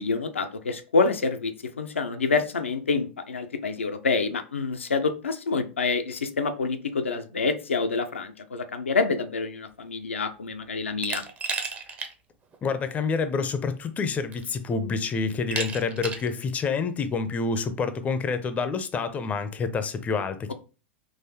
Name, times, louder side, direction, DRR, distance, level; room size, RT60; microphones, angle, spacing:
voice 1, 0.0-11.2, left 4 dB, 80° left, 0.5 m, -27 dB
Glass, 11.0-12.1 12.5-12.6 13.7-13.8 14.3-14.7 15.5-16.3, right 4 dB, 20° right, 0.6 m, -32 dB
voice 2, 12.6-20.5, left 5 dB, 20° left, 0.5 m, -28 dB
3.8 x 2.6 x 2.8 m
figure-of-eight pair, 95°, 7 cm